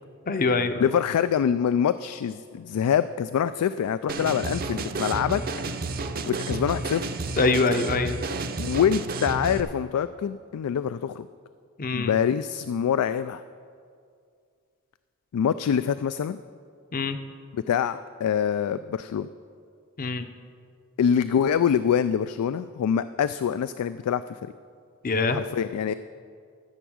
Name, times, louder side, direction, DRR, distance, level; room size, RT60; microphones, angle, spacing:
voice 1, 0.3-0.9 7.4-8.2 11.8-12.1 16.9-17.2 20.0-20.3 25.0-25.4, left 3 dB, 40° left, 9 dB, 0.7 m, -24 dB
voice 2, 0.8-5.4 6.3-7.1 8.6-11.3 11.9-13.4 15.3-16.4 17.5-19.3 21.0-24.4 25.3-25.9, left 8 dB, 90° left, 13 dB, 0.3 m, -25 dB
sound 1, 4.1-9.6, right 3 dB, 45° right, 0.6 m, -31 dB
13.5 x 8.0 x 6.2 m, 2.2 s
head